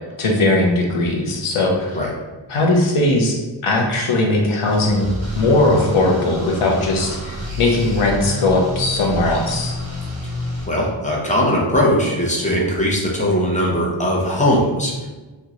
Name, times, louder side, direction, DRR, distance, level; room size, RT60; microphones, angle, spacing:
voice 1, 0.2-2.0 2.5-9.8, left 2 dB, 90° left, 1 dB, 0.7 m, -19 dB
sound 1, 4.6-10.7, left 1 dB, 35° right, 1.1 m, -29 dB
voice 2, 10.7-15.1, equal, 15° left, -3 dB, 0.7 m, -19 dB
3.0 x 2.2 x 3.7 m, 1.2 s
wide cardioid pair, 105°, 48 cm